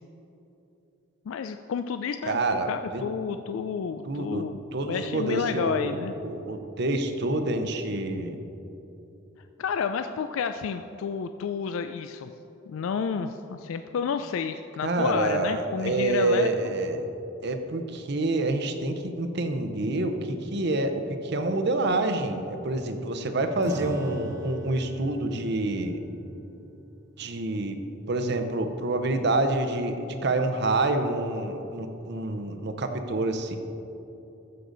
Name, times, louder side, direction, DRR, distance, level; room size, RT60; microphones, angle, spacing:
voice 1, 1.3-6.1 9.6-12.3 12.7-16.7, left 6 dB, 80° left, 8 dB, 0.3 m, -30 dB
voice 2, 2.3-3.0 4.1-4.4 4.7-8.4 14.8-17.1 17.4-20.9 21.2-26.0 27.2-27.8 28.1-33.6, right 2 dB, 55° right, 7 dB, 0.7 m, -27 dB
Acoustic guitar / Strum, 23.6-29.5, equal, 15° right, 1.0 m, -42 dB
14.5 x 6.6 x 3.9 m, 3.0 s
head